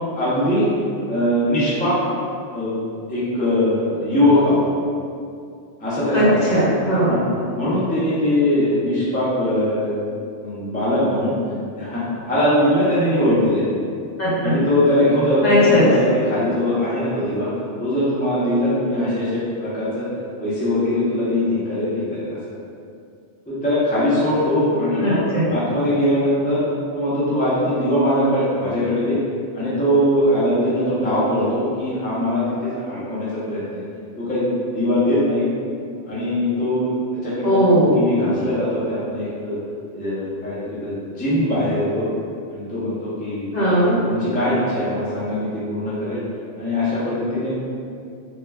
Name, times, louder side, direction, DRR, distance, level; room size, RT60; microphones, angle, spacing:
voice 1, 0.1-0.7 1.1-2.0 2.5-2.8 3.1-4.7 5.8-6.6 7.0-7.2 7.6-9.9 10.4-11.3 11.7-13.6 14.4-17.5 17.8-20.1 20.4-22.4 23.5-26.6 26.9-29.2 29.5-33.8 34.2-35.4 36.1-36.9 37.2-37.7 37.9-39.6 39.9-42.1 42.5-43.5 44.0-46.2 46.6-47.5, left 1 dB, 15° left, -10 dB, 0.3 m, -21 dB
voice 2, 6.1-7.1 14.2-14.5 15.4-15.9 25.0-25.5 37.4-38.0 43.5-43.9, left 1 dB, 40° left, -10 dB, 0.9 m, -18 dB
2.2 x 2.2 x 3.2 m, 2.4 s
omnidirectional pair, 1.2 m